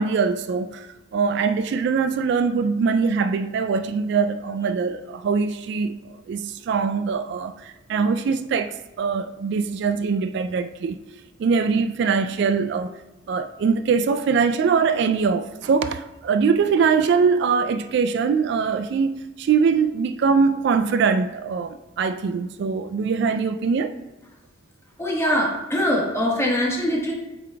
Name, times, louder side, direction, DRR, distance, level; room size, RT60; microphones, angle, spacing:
voice 1, 0.0-11.0 11.4-12.9 13.3-23.9, right 5 dB, 60° right, 0.3 m, -22 dB
voice 2, 25.0-27.1, equal, 15° left, 1.1 m, -22 dB
8.3 x 3.8 x 3.3 m
head